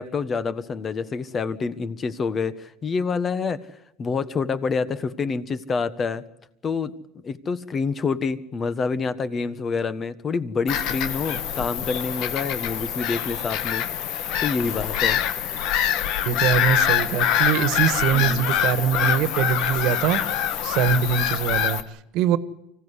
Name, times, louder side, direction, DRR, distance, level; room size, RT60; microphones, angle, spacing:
voice 1, 0.0-3.6 4.0-6.2 6.6-6.9 7.2-13.8 14.4-15.2 18.1-18.5 20.9-21.1, left 5 dB, 30° left, 14 dB, 1.4 m, -27 dB
Bird vocalization bird call bird song / Gull seagull, 10.7-21.8, left 10 dB, 65° left, 1.5 m, -24 dB
voice 2, 16.3-20.2 20.6-22.4, right 9 dB, 65° right, 13 dB, 1.6 m, -23 dB
25.0 x 16.5 x 9.9 m, 0.83 s
supercardioid pair, 120°, 0 cm